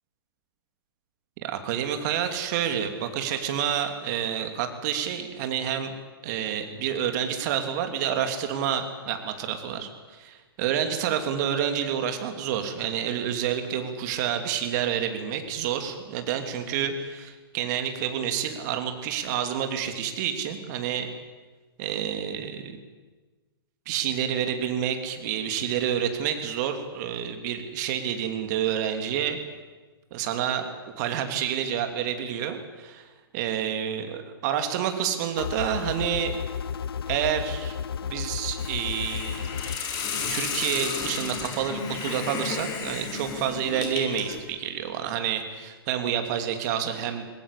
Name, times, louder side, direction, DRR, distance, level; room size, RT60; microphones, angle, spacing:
voice 1, 1.4-5.9 6.2-21.1 21.8-22.8 23.9-29.4 30.1-30.7 31.0-36.5 37.1-37.8 38.0-39.5 40.3-47.2, right 9 dB, 45° right, 7 dB, 3.0 m, -29 dB
sound 1, 35.4-39.8, left 7 dB, 70° left, 0.8 m, -33 dB
Hiss, 38.6-44.4, left 5 dB, 30° left, 4.5 m, -33 dB
22.0 x 20.5 x 8.5 m, 1.3 s
figure-of-eight pair, 115°, 13 cm